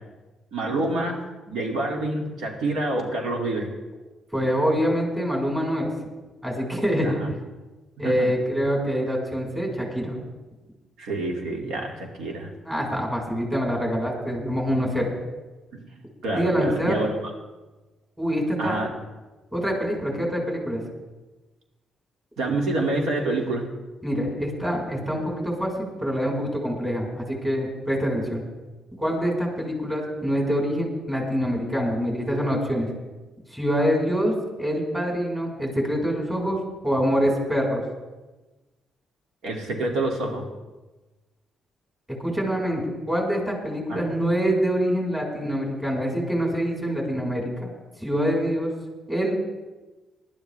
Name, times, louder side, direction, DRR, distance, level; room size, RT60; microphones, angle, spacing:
voice 1, 0.5-1.2 1.5-3.7 7.0-7.3 8.0-8.3 11.0-12.5 15.7-15.9 16.2-17.1 18.6-18.9 22.4-23.7 32.3-32.4 39.4-40.5 43.9-44.0, right 2 dB, 85° right, 1 dB, 2.5 m, -27 dB
voice 2, 4.3-5.9 6.4-7.2 8.0-10.1 12.6-15.1 16.3-17.0 18.2-18.8 19.5-20.8 24.0-28.4 29.0-32.9 33.5-36.6 36.8-37.8 42.2-47.7 48.0-48.7 49.1-49.4, equal, 15° right, -1 dB, 4.7 m, -25 dB
20.0 x 12.0 x 3.4 m, 1.2 s
cardioid pair, 95°, 0 cm